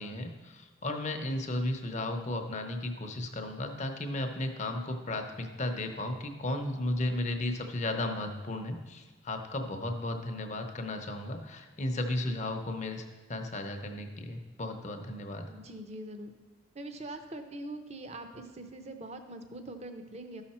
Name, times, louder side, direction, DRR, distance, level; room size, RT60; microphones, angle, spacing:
voice 1, 0.0-13.0 13.3-15.4, left 1 dB, 35° left, 5 dB, 0.7 m, -34 dB
voice 2, 15.5-16.3 16.7-20.4, right 1 dB, 35° right, 7 dB, 0.7 m, -43 dB
12.5 x 5.7 x 4.3 m, 1.3 s
head